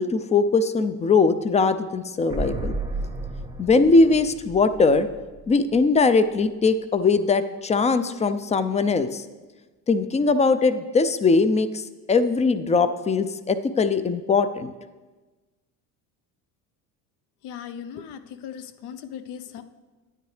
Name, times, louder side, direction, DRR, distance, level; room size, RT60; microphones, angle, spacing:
voice 1, 0.0-2.8 3.6-5.1 5.5-9.2 9.9-11.8 12.1-14.7, left 4 dB, 15° left, 12 dB, 0.4 m, -21 dB
sound 1, 2.3-6.0 6.3-6.4, right 2 dB, 10° right, 0.7 m, -33 dB
voice 2, 17.4-19.6, left 8 dB, 65° left, 11 dB, 0.7 m, -38 dB
9.9 x 8.8 x 3.2 m, 1.2 s
supercardioid pair, 95°, 43 cm